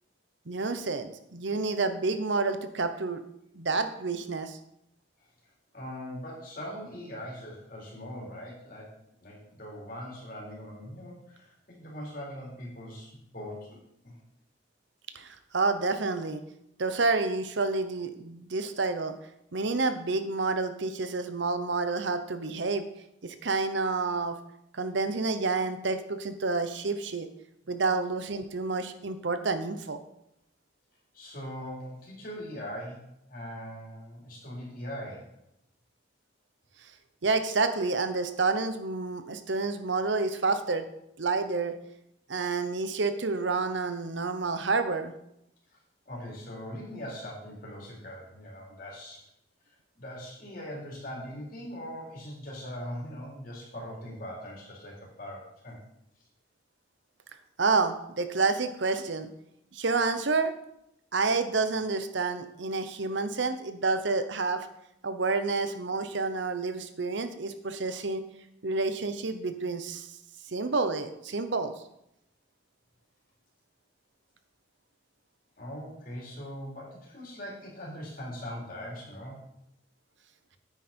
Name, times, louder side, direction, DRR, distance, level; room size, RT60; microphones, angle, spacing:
voice 1, 0.5-3.2 3.5-4.6 15.1-16.4 16.8-19.1 19.5-22.9 23.2-24.4 24.7-27.3 27.7-30.0 37.2-40.8 41.2-41.7 42.3-45.1 57.6-59.3 59.7-60.5 61.1-64.7 65.0-68.2 68.6-70.1 70.5-71.7, right 3 dB, 70° right, 9 dB, 0.9 m, -29 dB
voice 2, 5.7-14.2 31.1-35.4 46.1-49.2 49.6-55.8 75.6-79.4, equal, 45° left, -3 dB, 3.8 m, -41 dB
9.5 x 9.0 x 4.4 m, 0.79 s
head